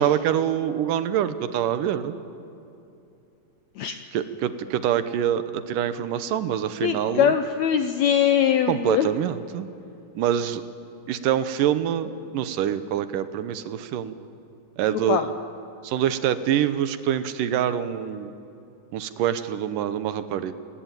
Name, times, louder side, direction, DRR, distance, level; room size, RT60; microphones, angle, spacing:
voice 1, 0.0-2.1 4.1-7.3 8.7-9.7 10.2-10.6 11.1-14.2 14.8-15.2 15.8-18.3 18.9-20.5, right 10 dB, 75° right, 12 dB, 2.4 m, -25 dB
voice 2, 6.8-9.1 14.9-15.3, left 9 dB, 80° left, 8 dB, 1.6 m, -22 dB
27.5 x 18.5 x 9.2 m, 2.6 s
omnidirectional pair, 4.1 m